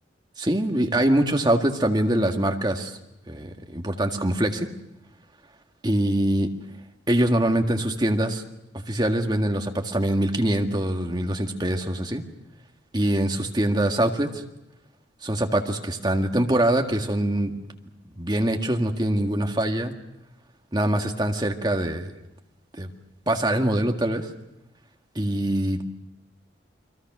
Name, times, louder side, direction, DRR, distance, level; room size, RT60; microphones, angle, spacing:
voice 1, 0.4-3.0 3.3-4.7 5.8-6.5 7.1-8.4 8.9-12.2 12.9-14.4 15.2-17.6 18.2-19.9 20.7-22.1 22.8-22.9 23.3-24.3 25.2-25.9, right 1 dB, 20° right, 3 dB, 1.9 m, -23 dB
30.0 x 22.5 x 6.2 m, 0.92 s
head